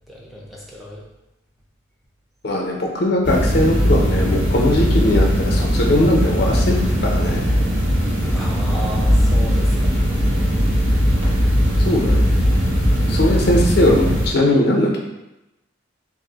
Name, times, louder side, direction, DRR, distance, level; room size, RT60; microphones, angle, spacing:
voice 1, 0.1-1.0 8.3-10.0, equal, ahead, -5 dB, 0.4 m, -34 dB
voice 2, 2.4-6.7 7.0-7.4 11.8-12.2 13.1-15.0, left 1 dB, 55° left, -1 dB, 0.5 m, -19 dB
sound 1, 3.2-14.3, equal, 75° right, 1.0 m, -18 dB
2.5 x 2.0 x 3.8 m, 0.95 s
head